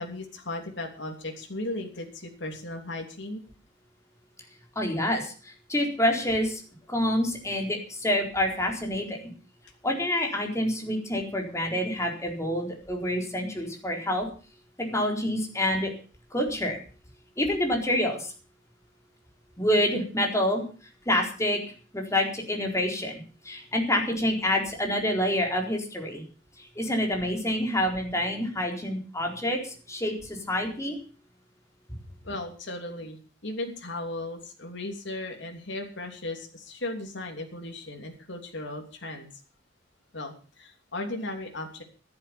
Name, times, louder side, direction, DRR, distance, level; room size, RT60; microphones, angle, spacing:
voice 1, 0.0-3.4 32.2-33.2 33.4-39.3 40.1-41.8, left 2 dB, 65° left, 3 dB, 3.0 m, -36 dB
voice 2, 4.8-6.6 6.9-9.3 9.8-14.3 14.8-15.9 16.3-16.8 17.4-18.3 19.6-20.6 21.1-21.6 21.9-26.2 26.6-31.0, left 1 dB, 15° left, 1 dB, 4.1 m, -27 dB
14.0 x 10.5 x 6.9 m, 0.39 s
head